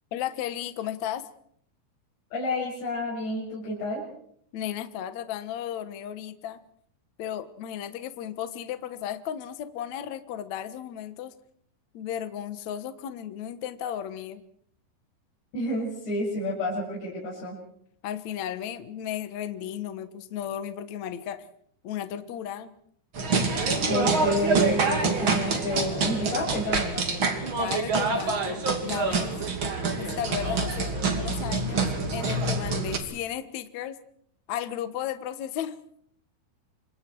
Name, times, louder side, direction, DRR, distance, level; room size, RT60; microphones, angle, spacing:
voice 1, 0.1-1.3 4.5-6.6 7.2-11.3 11.9-14.4 18.0-21.5 21.8-22.7 27.6-29.3 30.0-34.0 34.5-35.8, left 10 dB, 75° left, 10 dB, 1.6 m, -34 dB
voice 2, 2.3-4.0 15.5-17.6 23.9-27.3, left 1 dB, 60° left, -4 dB, 8.8 m, -30 dB
sound 1, 23.1-33.0, right 3 dB, 35° right, 2.5 m, -26 dB
29.0 x 25.5 x 4.7 m, 0.66 s
omnidirectional pair, 5.5 m